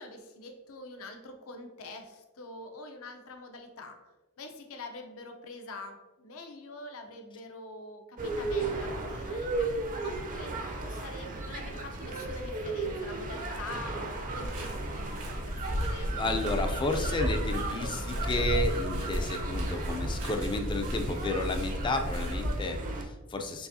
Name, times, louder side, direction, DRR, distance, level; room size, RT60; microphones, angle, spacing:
voice 1, 0.0-4.0 4.4-16.1, left 2 dB, 70° left, 5 dB, 0.6 m, -45 dB
sound 1, 8.2-23.0, right 2 dB, 40° right, 0.5 m, -35 dB
sound 2, 14.3-22.6, equal, 85° right, 1.4 m, -34 dB
voice 2, 16.1-23.7, left 2 dB, 20° left, 5 dB, 0.4 m, -32 dB
4.7 x 3.4 x 2.7 m, 1.1 s
head